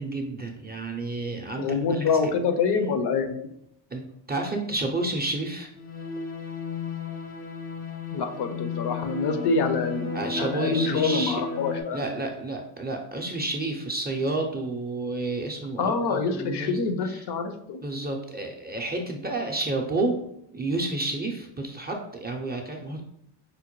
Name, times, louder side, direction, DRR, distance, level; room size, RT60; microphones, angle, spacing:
voice 1, 0.0-2.2 3.9-5.7 10.1-11.4 11.9-16.8 17.0-17.2 17.8-20.2 20.5-23.0, right 2 dB, 20° right, 2 dB, 0.4 m, -30 dB
voice 2, 1.6-3.4 8.1-12.0 15.8-17.8, left 4 dB, 55° left, 7 dB, 0.6 m, -26 dB
sound 1, 5.7-11.8, left 6 dB, 90° left, 1.3 m, -33 dB
5.0 x 2.1 x 3.0 m, 0.74 s
cardioid pair, 85°, 49 cm